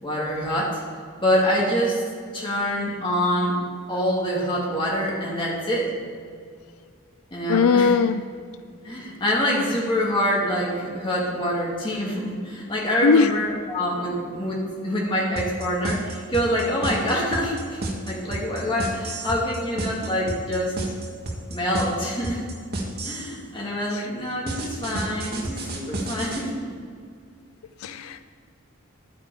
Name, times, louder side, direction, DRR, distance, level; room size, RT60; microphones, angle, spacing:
voice 1, 0.0-0.8 1.2-2.0 2.3-3.6 3.9-5.9 7.3-7.9 8.8-17.8 18.1-20.8 21.5-22.4 23.0-26.5 27.9-28.1, equal, 25° left, -4 dB, 2.4 m, -25 dB
voice 2, 7.5-8.2 13.0-13.4 23.9-24.1 27.8-28.2, left 5 dB, 85° left, 11 dB, 0.4 m, -19 dB
sound 1, 15.4-23.4 24.5-26.4, right 2 dB, 50° right, 1.8 m, -30 dB
10.5 x 9.1 x 4.8 m, 2.2 s
head